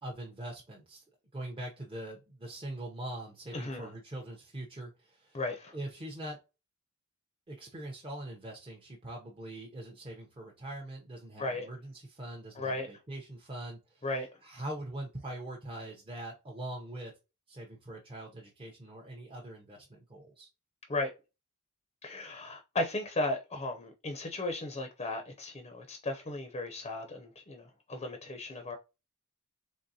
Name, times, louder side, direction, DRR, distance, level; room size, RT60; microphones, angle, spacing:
voice 1, 0.0-1.0 1.3-5.4 5.7-6.4 7.5-14.1 14.4-17.1 17.5-20.5, right 1 dB, 25° right, 0.7 m, -42 dB
voice 2, 3.5-3.9 5.3-5.7 11.4-11.7 12.6-12.9 14.0-14.3 20.9-21.1 22.0-28.8, left 2 dB, 30° left, 0.5 m, -35 dB
3.7 x 3.3 x 2.7 m
head